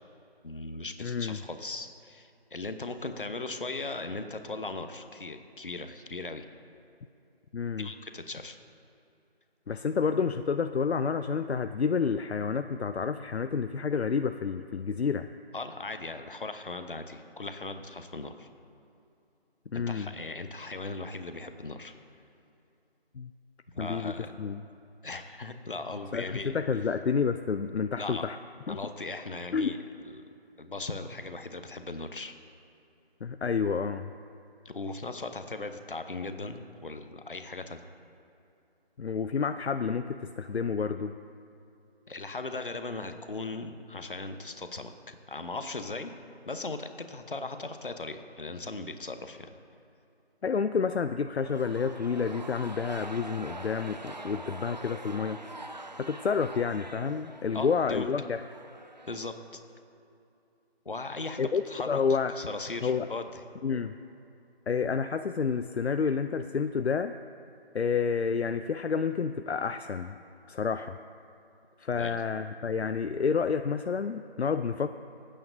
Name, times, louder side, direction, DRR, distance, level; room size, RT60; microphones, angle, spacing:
voice 1, 0.4-6.5 7.7-8.6 15.5-18.5 19.7-21.9 23.7-24.4 25.0-26.5 28.0-28.3 28.7-29.8 30.0-30.2 30.6-32.3 34.6-37.8 42.1-46.1 46.4-49.5 57.5-58.1 59.1-59.3 60.8-62.0 62.4-63.4 71.9-72.2, left 3 dB, 55° left, 8 dB, 0.9 m, -38 dB
voice 2, 1.0-1.4 7.5-7.9 9.7-15.3 19.7-20.1 23.2-23.3 23.8-24.1 24.4-24.6 26.1-28.4 28.7-28.8 29.5-29.7 33.2-34.1 39.0-41.1 50.4-55.4 56.0-58.4 61.4-61.6 61.9-62.3 62.8-63.1 63.6-63.9 64.7-67.1 67.7-70.1 70.5-71.0 71.8-74.9, left 5 dB, 85° left, 9 dB, 0.5 m, -29 dB
sound 1, 51.3-59.8, right 2 dB, 45° right, 0.5 m, -44 dB
25.0 x 8.7 x 2.6 m, 2.7 s
figure-of-eight pair, 160°, 32 cm